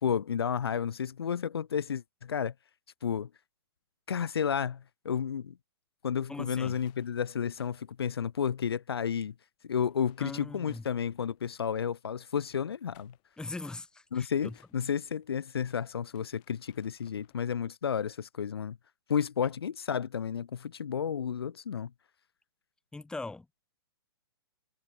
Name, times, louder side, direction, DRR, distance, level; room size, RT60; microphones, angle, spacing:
voice 1, 0.0-2.5 3.0-3.3 4.1-5.5 6.0-9.3 9.6-13.1 14.1-18.8 19.1-21.9, left 7 dB, 75° left, 0.7 m, -32 dB
voice 2, 6.3-6.8 10.2-10.8 13.4-14.6 22.9-23.6, left 3 dB, 5° left, 3.7 m, -41 dB
sound 1, 6.6-9.0 9.3-9.4 9.8-11.5 12.6-17.5, left 29 dB, 35° left, 7.8 m, -66 dB
hypercardioid pair, 120°, 13 cm